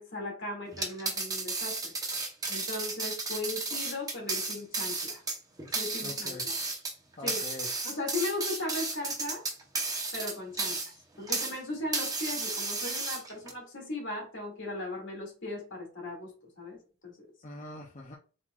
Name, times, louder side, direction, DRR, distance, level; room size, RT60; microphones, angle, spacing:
voice 1, 0.0-1.9 2.5-5.2 5.7-6.5 7.2-7.4 7.8-9.4 10.1-17.3, left 2 dB, 65° left, 0 dB, 2.2 m, -37 dB
sound 1, 0.7-11.6 11.9-13.5, right 3 dB, 20° right, 0.9 m, -33 dB
voice 2, 6.0-6.5 7.2-7.7 17.4-18.2, left 2 dB, 40° left, -2 dB, 0.7 m, -43 dB
4.3 x 4.0 x 2.4 m, 0.37 s
head